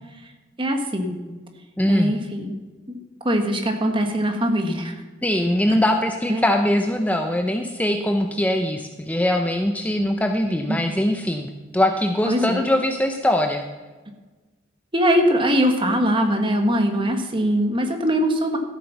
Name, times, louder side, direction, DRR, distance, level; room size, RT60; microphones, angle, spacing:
voice 1, 0.6-1.1 1.9-2.5 2.9-3.0 3.2-5.0 6.3-6.4 10.7-11.0 12.2-12.6 14.9-18.6, equal, 25° right, 4 dB, 1.5 m, -21 dB
voice 2, 1.8-2.1 5.2-13.6, left 1 dB, 10° left, 4 dB, 0.6 m, -22 dB
13.5 x 8.2 x 5.9 m, 1.3 s
head